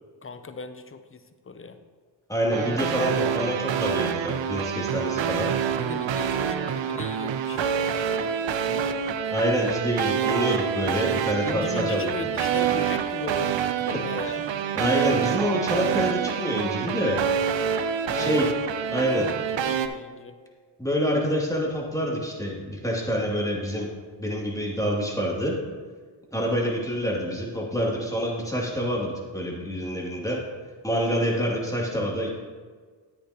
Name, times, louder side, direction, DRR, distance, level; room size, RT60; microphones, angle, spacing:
voice 1, 0.2-1.8 5.8-9.2 11.4-14.5 18.1-18.4 19.0-20.4, left 4 dB, 25° left, 9 dB, 0.8 m, -37 dB
voice 2, 2.3-5.5 9.3-12.1 14.7-17.2 18.1-18.5 18.9-19.3 20.8-23.9 24.2-25.6 26.3-30.4 30.8-32.3, equal, 5° left, -3 dB, 2.7 m, -26 dB
sound 1, 2.5-19.9, right 8 dB, 65° right, 0.7 m, -27 dB
9.8 x 8.5 x 3.0 m, 1.5 s
supercardioid pair, 45°, 49 cm